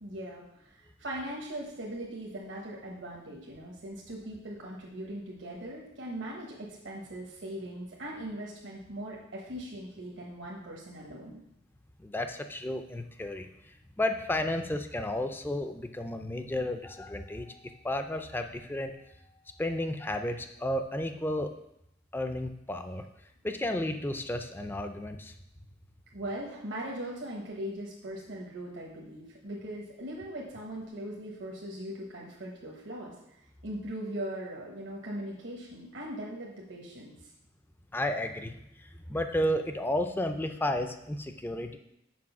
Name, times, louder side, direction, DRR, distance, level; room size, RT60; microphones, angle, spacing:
voice 1, 0.0-0.7 1.0-11.4 26.1-33.1 33.6-37.1, right 1 dB, 70° right, -3 dB, 1.2 m, -40 dB
voice 2, 12.0-17.6 17.8-18.9 19.6-21.5 22.1-23.0 23.4-25.3 37.9-38.5 38.8-41.8, left 1 dB, 10° left, 6 dB, 0.4 m, -32 dB
6.1 x 4.8 x 5.9 m, 0.81 s
head